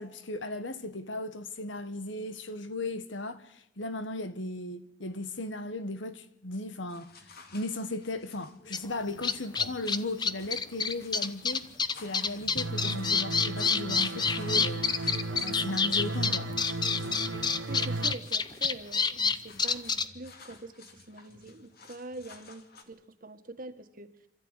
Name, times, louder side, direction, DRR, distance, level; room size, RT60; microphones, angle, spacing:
voice 1, 0.0-7.1 7.5-11.7 12.0-14.9 15.4-16.5, left 2 dB, 80° left, 1.6 m, -36 dB
sound 1, 6.9-22.8, left 2 dB, 55° left, 2.4 m, -52 dB
sound 2, 8.7-8.8 9.2-20.1, left 5 dB, 25° left, 0.8 m, -27 dB
sound 3, 12.6-18.1, right 2 dB, 90° right, 0.9 m, -35 dB
voice 2, 17.7-24.1, right 2 dB, 50° right, 1.7 m, -44 dB
27.0 x 13.5 x 9.9 m
head